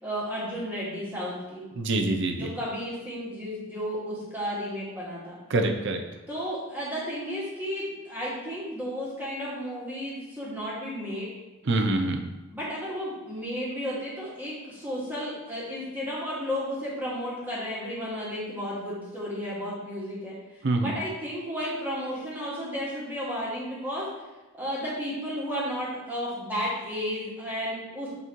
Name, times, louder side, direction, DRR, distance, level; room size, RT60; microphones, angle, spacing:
voice 1, 0.0-1.6 2.4-5.4 6.3-11.3 12.5-20.4 20.8-24.1 24.5-28.1, equal, 10° right, -8 dB, 1.9 m, -33 dB
voice 2, 1.8-2.5 5.5-6.0 11.7-12.3 20.6-20.9, right 2 dB, 55° right, 4 dB, 0.6 m, -25 dB
8.3 x 4.1 x 3.0 m, 1.1 s
head